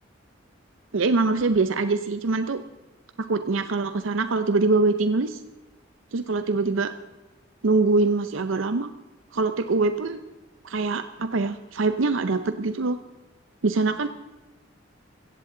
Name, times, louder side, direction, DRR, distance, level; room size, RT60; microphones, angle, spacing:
voice 1, 0.9-2.6 3.2-5.4 6.1-6.9 7.6-8.9 9.3-10.2 10.6-13.0 13.6-14.1, right 3 dB, 85° right, 11 dB, 0.6 m, -23 dB
16.5 x 15.0 x 3.8 m, 1.1 s
head